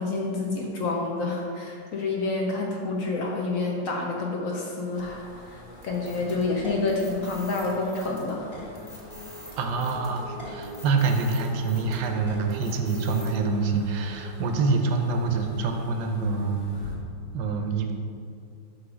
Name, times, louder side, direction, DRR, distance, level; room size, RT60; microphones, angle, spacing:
voice 1, 0.0-8.5, left 3 dB, 70° left, 0 dB, 0.8 m, -28 dB
sound 1, 4.9-17.0, equal, 50° left, 1.6 m, -43 dB
sound 2, 5.8-13.3, left 1 dB, 15° left, 1.1 m, -45 dB
voice 2, 9.6-16.6 17.3-17.9, right 4 dB, 70° right, 4 dB, 1.2 m, -26 dB
7.6 x 3.1 x 6.1 m, 2.3 s
omnidirectional pair, 2.1 m